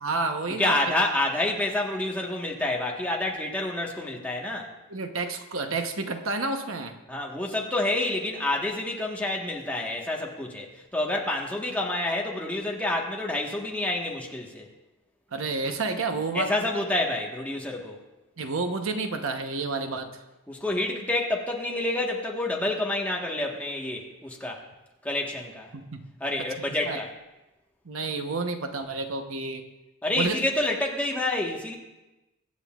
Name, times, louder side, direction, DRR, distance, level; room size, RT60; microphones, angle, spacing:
voice 1, 0.0-0.8 4.9-6.9 15.3-16.5 18.4-20.1 25.7-26.0 26.7-27.0 27.8-29.6 30.2-30.4, right 3 dB, 70° right, 5 dB, 1.0 m, -30 dB
voice 2, 0.6-4.7 7.1-14.7 16.3-18.0 20.5-24.6 25.0-25.7 26.2-27.1 30.0-31.7, left 1 dB, 5° left, -1 dB, 1.3 m, -28 dB
23.5 x 9.6 x 2.4 m, 1.0 s
head